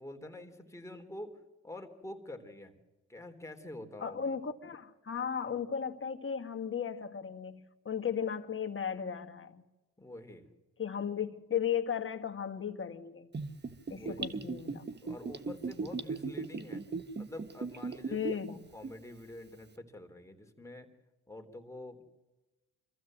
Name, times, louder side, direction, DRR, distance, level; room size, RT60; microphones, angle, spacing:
voice 1, 0.0-2.8 3.1-4.3 10.0-10.5 13.9-14.4 15.0-16.8 17.2-20.9 21.3-22.0, left 1 dB, 10° left, 4 dB, 3.6 m, -47 dB
voice 2, 4.0-9.6 10.8-13.3 13.9-14.9 18.1-18.5, left 7 dB, 35° left, 5 dB, 2.0 m, -36 dB
Gurgling / Bathtub (filling or washing), 13.3-18.5 18.8-18.9, right 4 dB, 30° right, 1.4 m, -37 dB
26.0 x 15.0 x 7.8 m, 1.1 s
cardioid pair, 80°, 36 cm